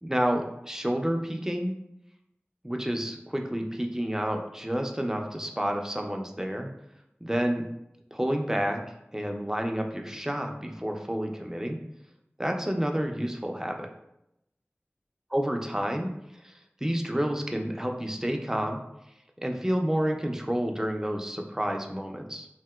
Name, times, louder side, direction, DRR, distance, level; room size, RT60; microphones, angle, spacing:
voice 1, 0.1-1.7 2.6-6.7 7.2-7.6 8.1-8.8 9.1-11.8 12.4-13.9 15.3-16.1 16.4-16.5 16.8-18.8 19.4-22.5, equal, 10° right, 3 dB, 0.4 m, -29 dB
3.0 x 2.7 x 2.2 m, 0.82 s
wide cardioid pair, 45°, 4 cm